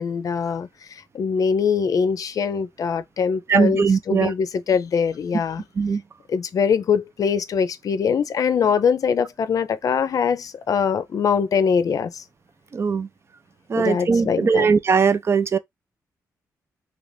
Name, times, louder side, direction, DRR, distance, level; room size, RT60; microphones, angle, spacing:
voice 1, 0.0-5.6 6.3-12.2 13.7-14.7, left 6 dB, 60° left, 0.5 m, -23 dB
voice 2, 3.5-4.3 5.8-6.0 12.7-13.1 13.7-15.6, right 5 dB, 40° right, 0.4 m, -20 dB
2.9 x 2.6 x 3.3 m
cardioid pair, 70°, 7 cm